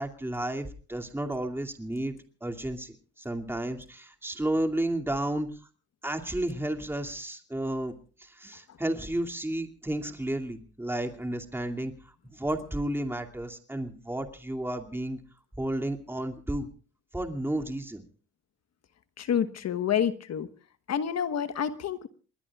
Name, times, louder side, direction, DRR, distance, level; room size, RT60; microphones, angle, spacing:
voice 1, 0.0-5.6 6.0-7.9 8.2-15.2 15.6-16.7 17.1-18.0, right 1 dB, 5° right, 3 dB, 2.5 m, -32 dB
voice 2, 19.2-20.5 20.9-22.1, left 8 dB, 60° left, 11 dB, 1.3 m, -28 dB
28.0 x 20.5 x 2.4 m, 0.38 s
cardioid pair, 90°, 30 cm